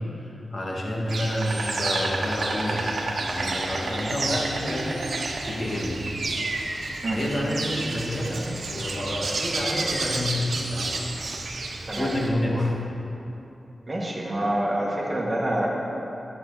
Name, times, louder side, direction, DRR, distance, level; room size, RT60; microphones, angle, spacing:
voice 1, 0.0-6.1 7.1-11.1 12.0-12.8, left 1 dB, 40° left, -3 dB, 2.2 m, -29 dB
Insect, 1.1-12.3, right 3 dB, 65° right, 1.2 m, -30 dB
voice 2, 13.9-15.7, right 1 dB, 25° right, -3 dB, 2.1 m, -26 dB
15.0 x 9.8 x 4.3 m, 2.9 s
wide cardioid pair, 125°, 0 cm